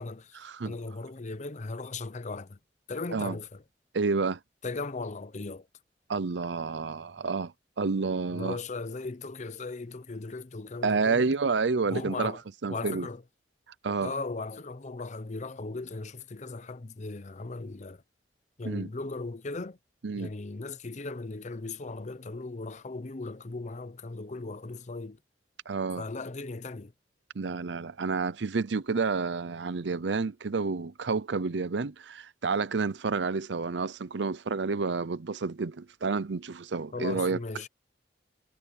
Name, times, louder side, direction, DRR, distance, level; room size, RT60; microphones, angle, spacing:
voice 1, 0.0-2.6 2.9-3.6 4.6-5.7 8.3-11.4 11.8-12.4 12.7-13.2 14.0-18.0 18.6-19.8 20.1-25.2 26.0-26.9 36.9-37.7, left 3 dB, 40° left, 0.8 m, -37 dB
voice 2, 3.9-4.4 6.1-7.5 7.8-8.6 10.8-12.3 12.6-13.1 13.8-14.1 18.6-18.9 20.0-20.3 25.7-26.0 27.3-37.4, right 4 dB, 75° right, 0.6 m, -29 dB
head